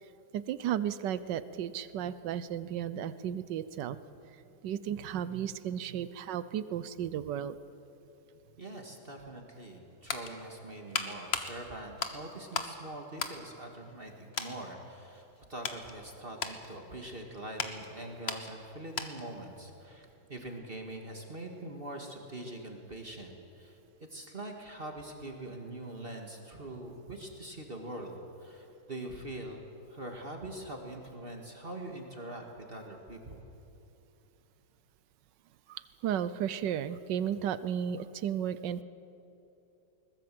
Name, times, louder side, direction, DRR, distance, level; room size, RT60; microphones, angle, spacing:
voice 1, 0.3-4.0 4.6-7.6 35.7-38.8, right 9 dB, 80° right, 15 dB, 1.3 m, -34 dB
voice 2, 8.6-23.8 24.1-33.4, right 1 dB, 30° right, 2 dB, 2.1 m, -43 dB
sound 1, 9.6-12.8 13.1-14.0 14.3-14.6 15.1-19.4 19.7-19.8, left 4 dB, 40° left, 1.4 m, -38 dB
21.5 x 20.0 x 7.7 m, 2.9 s
omnidirectional pair, 1.9 m